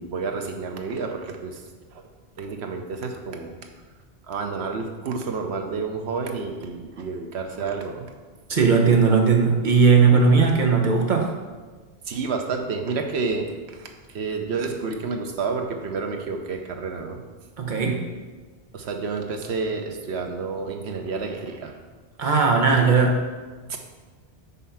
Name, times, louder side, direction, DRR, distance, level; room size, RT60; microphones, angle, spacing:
voice 1, 0.0-1.6 1.9-2.0 2.4-3.5 4.3-8.1 12.1-13.5 13.7-17.2 18.7-21.8 23.7-23.8, right 4 dB, 85° right, 4 dB, 1.0 m, -30 dB
voice 2, 8.5-11.3 17.6-18.1 22.2-23.3, right 5 dB, 50° right, 1 dB, 1.0 m, -18 dB
5.6 x 4.2 x 5.6 m, 1.4 s
omnidirectional pair, 1.1 m